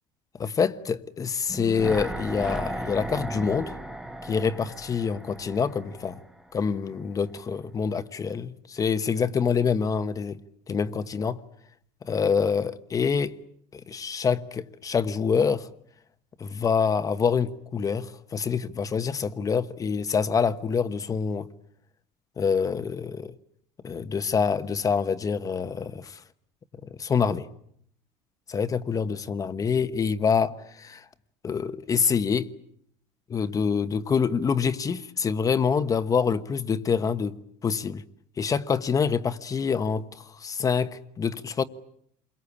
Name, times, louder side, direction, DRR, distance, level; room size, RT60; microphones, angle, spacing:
voice 1, 0.4-3.8 4.2-6.2 6.5-10.4 10.7-11.4 12.0-13.4 13.7-15.7 16.4-21.5 22.4-23.3 23.8-26.2 26.9-27.5 28.5-31.0 31.4-32.5 33.3-38.0 38.4-40.1 40.4-41.6, left 6 dB, 25° left, 1.2 m, -26 dB
sound 1, 1.5-6.6 6.9-7.0, right 1 dB, 5° right, 1.3 m, -36 dB
28.0 x 23.0 x 8.6 m
cardioid pair, 125°, 13 cm